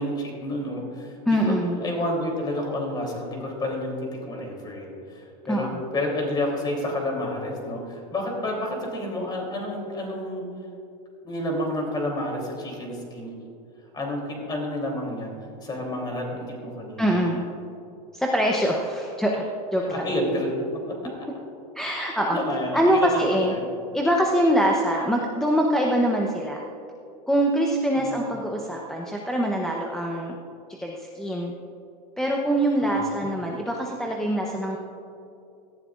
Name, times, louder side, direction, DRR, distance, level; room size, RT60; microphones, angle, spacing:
voice 1, 0.0-10.4 11.2-13.3 13.9-15.3 15.6-17.2 19.9-20.6 22.2-23.7 27.9-28.3 32.8-33.4, left 1 dB, 20° left, 0 dB, 3.3 m, -30 dB
voice 2, 1.3-1.8 5.5-5.8 17.0-17.4 18.1-19.5 19.7-19.9 21.7-22.4 22.7-23.5 23.9-26.6 27.3-30.4 30.8-31.5 32.2-34.8, equal, ahead, -1 dB, 0.8 m, -24 dB
17.5 x 14.0 x 2.5 m, 2.7 s
supercardioid pair, 140°, 21 cm